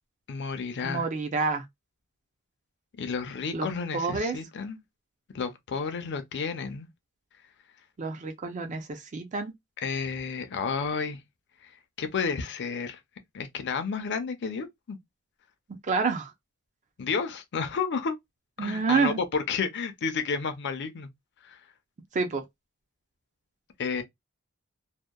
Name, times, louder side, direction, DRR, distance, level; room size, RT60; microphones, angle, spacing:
voice 1, 0.3-1.1 3.0-4.8 5.3-6.9 9.8-11.2 12.0-13.0 13.3-15.0 17.0-18.2 18.6-21.1 21.5-21.6 23.8-24.0, left 5 dB, 50° left, 0.5 m, -31 dB
voice 2, 0.8-1.6 3.5-4.4 8.0-9.5 15.8-16.3 18.6-19.2 22.1-22.4, right 4 dB, 35° right, 0.4 m, -28 dB
2.7 x 2.0 x 2.2 m
head